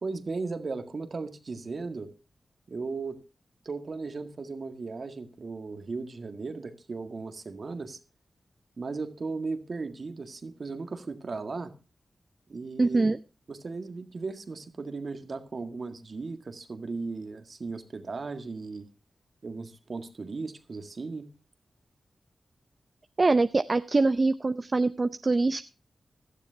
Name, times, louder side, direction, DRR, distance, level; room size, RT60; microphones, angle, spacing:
voice 1, 0.0-2.1 2.7-3.2 3.7-8.0 8.8-11.7 12.5-13.1 13.5-18.9 19.4-21.3, right 4 dB, 60° right, 8 dB, 1.8 m, -36 dB
voice 2, 12.8-13.2 23.2-25.6, right 3 dB, 45° right, 12 dB, 0.6 m, -24 dB
17.0 x 12.0 x 2.7 m, 0.32 s
cardioid pair, 50°, 0 cm